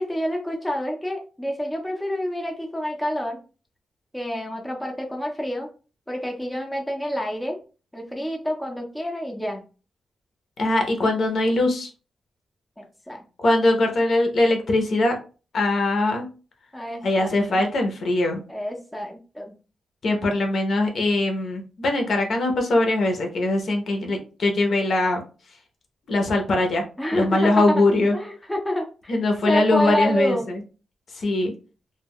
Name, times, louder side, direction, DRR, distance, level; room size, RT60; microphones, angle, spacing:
voice 1, 0.0-3.4 4.1-5.7 6.1-7.6 7.9-9.6 12.8-13.2 16.7-17.6 18.5-19.5 27.0-27.8 28.1-29.2 29.4-30.5, equal, 5° left, 0 dB, 0.5 m, -28 dB
voice 2, 10.6-11.9 13.4-15.2 15.5-16.3 17.0-18.4 20.0-25.2 26.1-26.8 27.1-28.1 29.1-30.6 31.1-31.5, left 2 dB, 55° left, 3 dB, 0.7 m, -21 dB
2.2 x 2.2 x 3.5 m, 0.35 s
wide cardioid pair, 135°, 0 cm